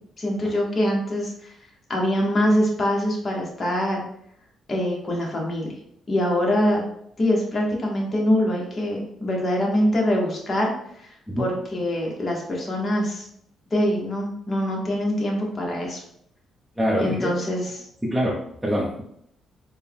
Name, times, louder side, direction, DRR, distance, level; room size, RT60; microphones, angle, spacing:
voice 1, 0.2-1.5 1.9-4.0 4.7-5.7 6.1-6.9 7.2-11.1 11.4-13.3 13.7-16.0 17.0-17.9, equal, 35° left, -1 dB, 1.3 m, -24 dB
voice 2, 16.8-17.3 18.0-18.3 18.6-19.0, equal, 5° right, -5 dB, 0.8 m, -24 dB
4.3 x 2.3 x 3.6 m, 0.72 s
cardioid pair, 90°, 0 cm